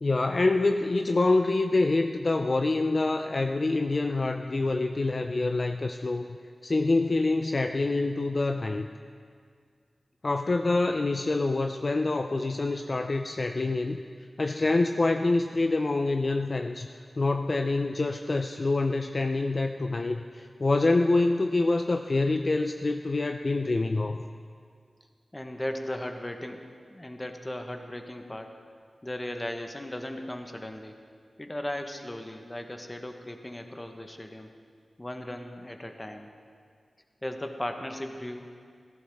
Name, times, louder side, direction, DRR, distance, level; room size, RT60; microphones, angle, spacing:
voice 1, 0.0-6.3 6.6-8.9 10.2-14.0 14.4-16.9 17.2-24.2, left 2 dB, 45° left, 6 dB, 0.4 m, -26 dB
voice 2, 25.3-28.6 29.0-31.0 31.4-34.5 35.0-36.3 37.2-38.5, left 1 dB, 20° left, 5 dB, 1.0 m, -37 dB
16.5 x 14.5 x 3.5 m, 2.1 s
wide cardioid pair, 105°, 0 cm